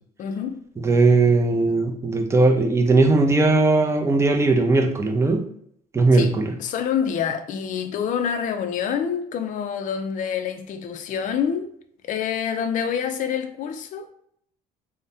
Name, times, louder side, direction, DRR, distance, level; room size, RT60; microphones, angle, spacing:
voice 1, 0.2-0.6 6.1-6.3 6.6-11.7 12.0-14.1, left 7 dB, 50° left, 0.4 m, -27 dB
voice 2, 0.8-5.5 5.9-6.5, right 3 dB, 15° right, 0.5 m, -18 dB
3.2 x 2.1 x 2.7 m
cardioid pair, 110°, 17 cm